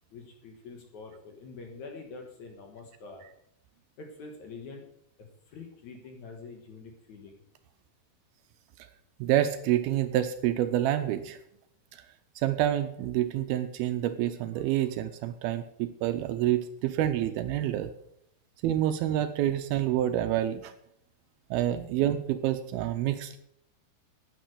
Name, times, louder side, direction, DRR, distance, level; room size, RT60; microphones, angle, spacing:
voice 1, 0.1-3.2 4.0-4.8 5.2-7.4, left 4 dB, 60° left, 3 dB, 2.3 m, -45 dB
voice 2, 9.2-11.4 11.9-12.0 12.4-17.9 18.6-20.7 21.5-23.4, right 12 dB, 80° right, 9 dB, 2.4 m, -28 dB
9.4 x 9.3 x 6.5 m, 0.72 s
omnidirectional pair, 4.7 m